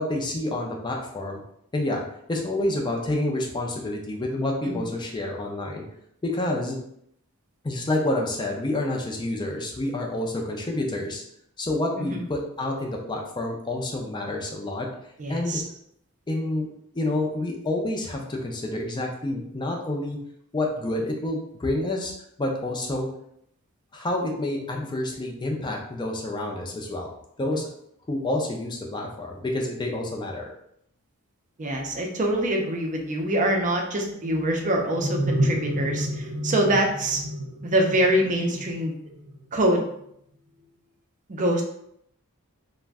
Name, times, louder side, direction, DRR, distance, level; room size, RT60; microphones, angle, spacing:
voice 1, 0.0-1.4 1.7-2.0 2.3-5.8 6.2-6.8 7.6-11.2 11.6-14.9 15.3-15.6 16.3-16.7 16.9-20.2 20.5-22.1 22.4-23.1 23.9-27.1 27.4-27.7 28.1-30.5, left 1 dB, 20° left, 0 dB, 0.4 m, -28 dB
voice 2, 15.2-15.6 27.5-27.6 31.6-37.2 37.6-39.0 39.5-39.8 41.3-41.6, right 1 dB, 35° right, 1 dB, 0.4 m, -24 dB
sound 1, 34.1-39.5, equal, 80° right, 0.7 m, -30 dB
2.4 x 2.1 x 3.4 m, 0.72 s
head